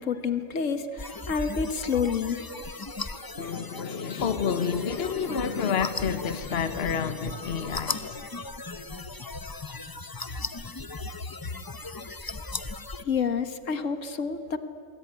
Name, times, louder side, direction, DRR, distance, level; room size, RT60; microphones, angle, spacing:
voice 1, 0.0-2.4 13.0-14.6, left 6 dB, 80° left, 1.7 m, -28 dB
sound 1, 1.0-13.0, left 3 dB, 20° left, 0.7 m, -37 dB
voice 2, 3.4-8.2, left 6 dB, 55° left, 1.3 m, -29 dB
26.5 x 22.5 x 9.4 m
omnidirectional pair, 1.3 m